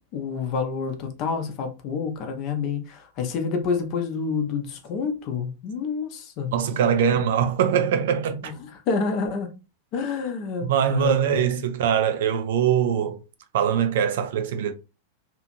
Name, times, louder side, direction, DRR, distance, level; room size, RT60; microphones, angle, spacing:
voice 1, 0.1-6.5 8.4-8.5 8.9-9.5 9.9-11.6, left 5 dB, 40° left, 0.6 m, -28 dB
voice 2, 6.5-8.5 10.6-13.2 13.5-14.7, right 8 dB, 55° right, 0.4 m, -22 dB
2.8 x 2.5 x 2.6 m
figure-of-eight pair, 90°, 0 cm